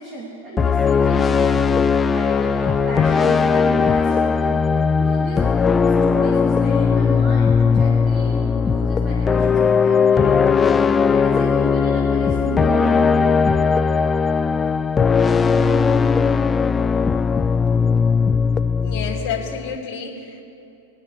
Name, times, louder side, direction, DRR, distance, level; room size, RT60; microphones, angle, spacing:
voice 1, 0.0-1.7 2.1-4.6 4.9-5.4 5.8-10.6 11.1-13.2, right 1 dB, 30° right, -4 dB, 2.7 m, -34 dB
sound 1, 0.6-19.7, left 5 dB, 15° left, 0.3 m, -18 dB
voice 2, 18.8-20.4, left 6 dB, 45° left, -3 dB, 2.7 m, -29 dB
23.0 x 9.1 x 3.3 m, 2.8 s
hypercardioid pair, 120°, 0 cm